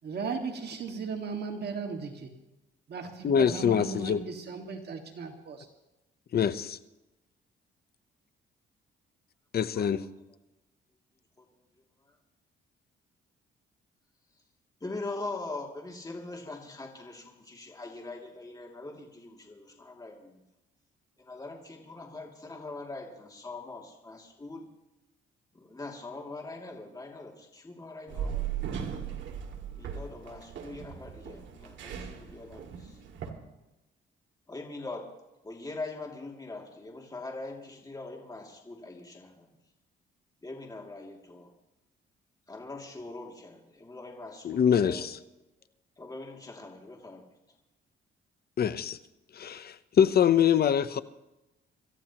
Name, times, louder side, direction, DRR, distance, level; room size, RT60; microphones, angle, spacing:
voice 1, 0.0-2.3 2.9-5.7, right 5 dB, 55° right, 4 dB, 1.9 m, -36 dB
voice 2, 3.2-4.2 6.3-6.8 9.5-10.0 44.4-45.1 48.6-49.0 49.3-51.0, left 8 dB, 50° left, 13 dB, 0.8 m, -24 dB
voice 3, 14.8-20.4 21.2-24.7 25.5-28.4 29.7-33.0 34.5-39.5 40.4-41.5 42.5-45.1 46.0-47.3, left 2 dB, 20° left, 1 dB, 2.6 m, -42 dB
sound 1, 28.1-33.3, right 8 dB, 70° right, 2.2 m, -38 dB
26.0 x 14.5 x 3.0 m, 0.96 s
cardioid pair, 90°, 20 cm